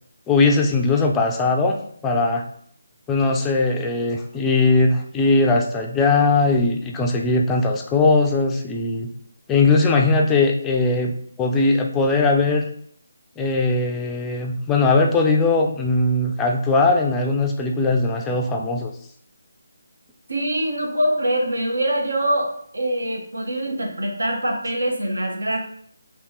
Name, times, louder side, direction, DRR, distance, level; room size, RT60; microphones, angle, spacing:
voice 1, 0.3-1.8 2.0-2.5 3.1-9.1 9.5-12.7 13.4-18.9, left 3 dB, 10° left, 1 dB, 0.3 m, -19 dB
voice 2, 20.3-25.6, right 1 dB, 85° right, 1 dB, 1.1 m, -24 dB
2.9 x 2.9 x 3.6 m, 0.62 s
figure-of-eight pair, 165°, 0 cm